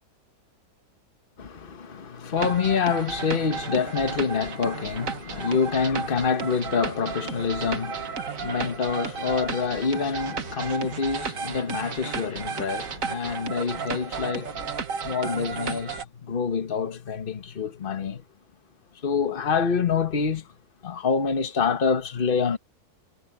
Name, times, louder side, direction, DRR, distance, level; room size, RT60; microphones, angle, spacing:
voice 1, 1.4-14.7 15.0-18.2 19.0-20.5 20.8-22.6, left 6 dB, 35° left, 1.4 m, -26 dB
sound 1, 2.4-16.1, right 6 dB, 60° right, 1.8 m, -33 dB
omnidirectional pair, 1.7 m